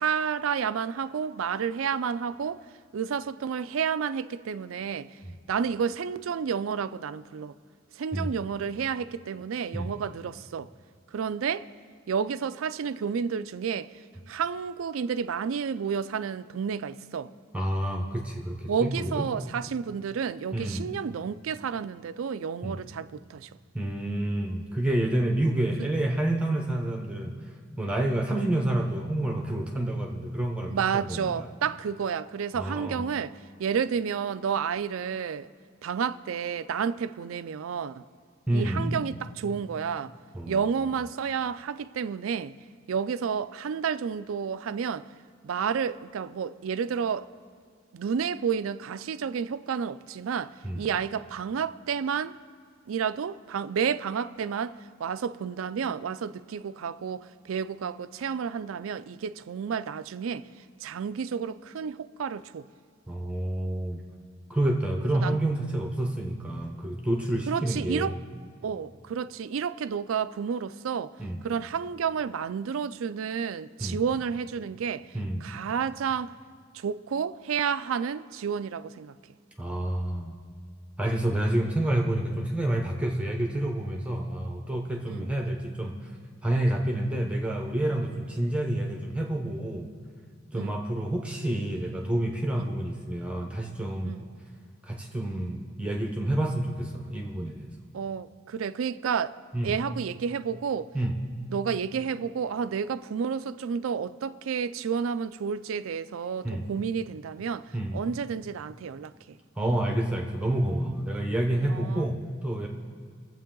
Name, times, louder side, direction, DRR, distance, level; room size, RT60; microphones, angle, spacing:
voice 1, 0.0-2.6 2.9-5.1 5.5-7.6 8.0-10.7 11.1-11.7 12.1-13.9 14.3-17.3 18.7-23.5 25.8-25.9 30.7-35.5 35.8-38.0 38.5-40.1 40.5-42.6 42.9-45.1 45.4-47.3 47.9-52.4 52.9-60.5 60.8-62.7 65.1-65.4 67.5-68.2 68.6-71.1 71.4-75.1 75.4-76.4 76.7-79.1 85.1-85.3 90.5-90.8 92.5-92.7 94.0-94.2 97.9-99.3 99.6-100.9 101.5-109.4 111.7-112.1, right 7 dB, 90° right, 0.4 m, -31 dB
voice 2, 17.5-19.3 20.5-20.9 22.6-22.8 23.7-27.3 27.8-31.5 32.6-33.0 38.5-39.0 40.3-40.6 50.6-50.9 63.1-64.0 64.5-68.2 71.2-71.4 73.8-74.0 75.1-75.5 79.6-80.4 81.0-86.1 86.4-89.9 90.5-94.1 94.8-97.7 99.5-99.7 100.9-101.1 106.4-106.7 107.7-108.0 109.6-112.7, right 1 dB, 5° right, 0.8 m, -28 dB
23.0 x 7.8 x 3.8 m
head